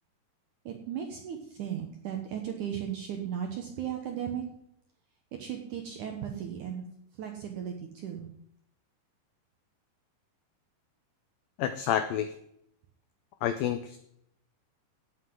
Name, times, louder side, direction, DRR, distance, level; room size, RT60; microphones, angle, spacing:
voice 1, 0.7-4.4 5.3-6.8 7.1-8.3, right 9 dB, 75° right, 3 dB, 1.9 m, -36 dB
voice 2, 11.6-12.4 13.4-14.0, left 10 dB, 85° left, 10 dB, 2.0 m, -29 dB
17.0 x 7.9 x 3.8 m, 0.73 s
omnidirectional pair, 4.9 m